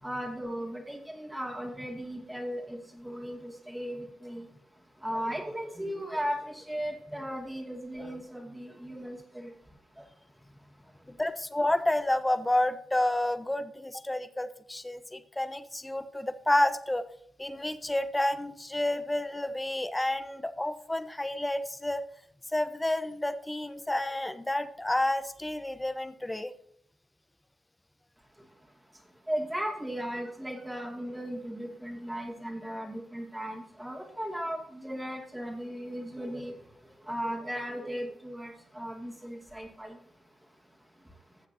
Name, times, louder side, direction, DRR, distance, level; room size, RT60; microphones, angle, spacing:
voice 1, 0.0-10.1 10.6-11.1 28.3-41.5, equal, 10° right, 0 dB, 2.4 m, -37 dB
voice 2, 11.1-17.0 17.4-22.0 22.5-26.5, left 1 dB, 15° left, 11 dB, 1.0 m, -30 dB
15.0 x 7.2 x 2.8 m, 0.68 s
supercardioid pair, 45°, 0 cm